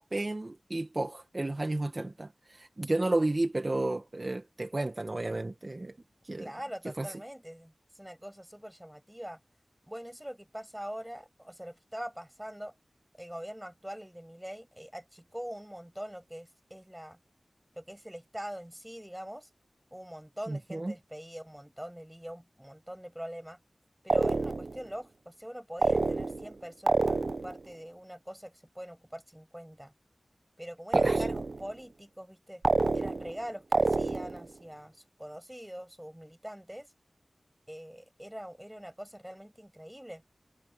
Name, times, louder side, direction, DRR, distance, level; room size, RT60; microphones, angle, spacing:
voice 1, 0.0-5.9 6.2-6.5 7.0-7.1 20.5-20.9 30.9-31.2, right 2 dB, 40° right, 1.3 m, -32 dB
voice 2, 6.4-9.4 9.8-12.7 13.2-17.2 17.8-19.5 19.9-23.6 24.0-29.9 30.6-32.6 32.9-36.9 37.7-40.2, equal, 5° right, 6.6 m, -43 dB
sound 1, 24.1-24.8 25.8-26.5 26.9-27.6 30.9-31.7 32.6-33.4 33.7-34.4, right 3 dB, 60° right, 0.5 m, -27 dB
wide cardioid pair, 55°, 0 cm